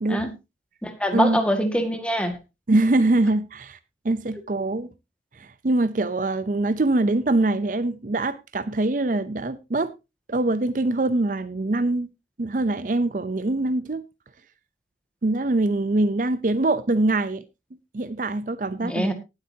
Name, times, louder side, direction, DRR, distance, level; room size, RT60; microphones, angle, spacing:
voice 1, 0.8-2.4 18.8-19.1, equal, 5° left, 1.8 m, -24 dB
voice 2, 2.7-3.8 4.0-4.9 5.4-9.9 10.3-12.1 12.4-14.0 15.2-17.4 17.9-19.1, right 2 dB, 45° right, 0.6 m, -23 dB
18.5 x 8.1 x 2.8 m
head